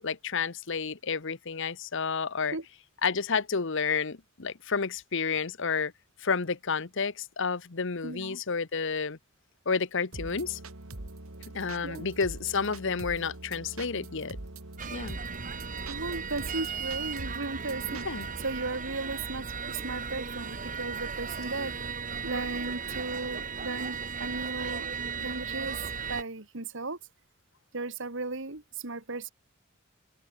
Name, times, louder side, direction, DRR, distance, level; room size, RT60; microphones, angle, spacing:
voice 1, 0.0-2.6 3.0-5.9 6.2-9.2 9.7-10.6 11.5-14.4 14.9-15.2 18.0-18.3, left 5 dB, 60° left, 1.1 m, -30 dB
voice 2, 8.0-8.4 11.8-12.1 15.9-18.1 18.4-21.7 22.2-24.9 25.2-25.8 26.1-27.0 27.7-29.3, right 3 dB, 60° right, 2.2 m, -36 dB
sound 1, 10.1-18.5, right 2 dB, 80° right, 2.3 m, -43 dB
Kings Cross - Bagpipes outside Station, 14.8-26.2, right 5 dB, 40° right, 2.1 m, -36 dB
open air
head